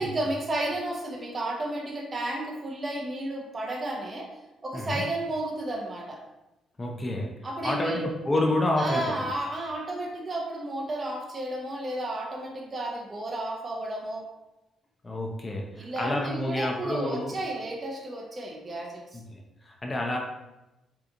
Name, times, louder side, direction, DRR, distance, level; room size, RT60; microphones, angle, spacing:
voice 1, 0.0-4.4 4.6-6.2 7.4-8.0 8.8-14.3 15.8-19.2, right 1 dB, 30° right, -1 dB, 0.6 m, -32 dB
voice 2, 6.8-7.4 7.6-9.1 15.0-17.3 19.1-20.2, left 1 dB, 25° left, 0 dB, 0.6 m, -29 dB
2.8 x 2.4 x 3.7 m, 0.98 s
cardioid pair, 90°, 0 cm